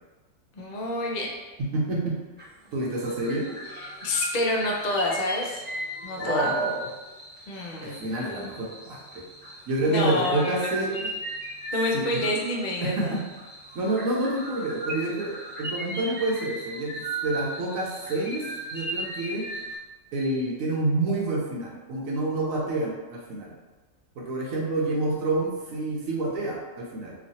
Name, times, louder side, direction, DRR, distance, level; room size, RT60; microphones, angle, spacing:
voice 1, 0.5-1.3 3.7-5.6 6.0-6.5 7.5-8.0 9.8-11.1 11.7-13.2, left 1 dB, 70° left, -1 dB, 0.4 m, -28 dB
voice 2, 1.7-2.2 2.7-3.4 6.2-6.9 7.8-9.0 9.7-10.9 11.9-12.3 12.8-13.2 13.7-15.3 15.6-16.9 17.2-19.5 20.1-23.5 24.2-27.1, right 2 dB, 80° right, -3 dB, 1.1 m, -28 dB
sound 1, 2.4-2.7 2.9-19.8, right 2 dB, 10° right, 0.6 m, -37 dB
3.1 x 2.4 x 2.6 m, 1.2 s
omnidirectional pair, 1.4 m